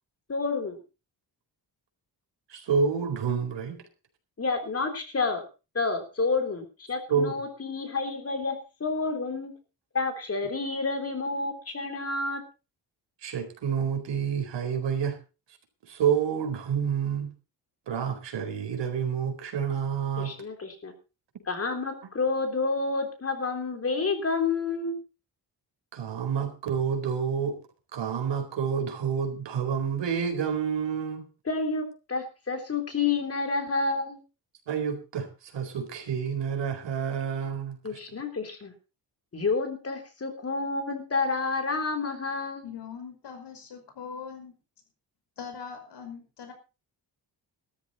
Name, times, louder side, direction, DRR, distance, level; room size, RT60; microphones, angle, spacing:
voice 1, 0.3-0.8 4.4-5.4 5.7-9.5 9.9-12.4 20.2-20.9 21.5-25.0 31.5-34.2 37.8-38.7 39.3-42.7, left 4 dB, 35° left, 3.5 m, -29 dB
voice 2, 2.5-3.8 7.1-7.3 13.2-15.2 15.9-17.3 17.9-20.3 25.9-27.6 27.9-31.2 34.7-38.0, right 7 dB, 90° right, 4.3 m, -29 dB
voice 3, 42.6-44.5 45.4-46.5, left 6 dB, 75° left, 5.4 m, -41 dB
15.0 x 13.0 x 4.1 m
wide cardioid pair, 150°, 42 cm